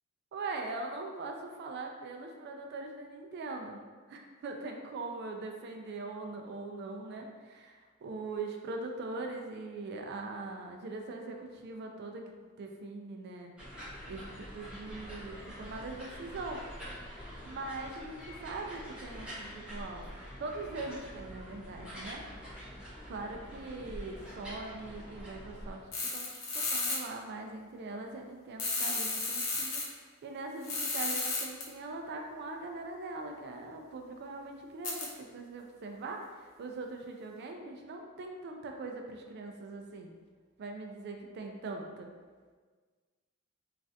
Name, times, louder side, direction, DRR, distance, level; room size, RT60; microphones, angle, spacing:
voice 1, 0.3-3.8 4.1-12.3 12.6-13.5 14.1-16.6 17.4-22.2 23.1-25.8 26.1-40.1 40.6-42.1, right 3 dB, 55° right, 3 dB, 0.3 m, -41 dB
sound 1, 13.6-25.8, equal, 5° right, 0.8 m, -46 dB
sound 2, 25.9-27.0 28.6-29.8 30.6-31.6 34.8-35.1, left 3 dB, 75° left, 0.7 m, -33 dB
3.2 x 2.4 x 2.6 m, 1.5 s
head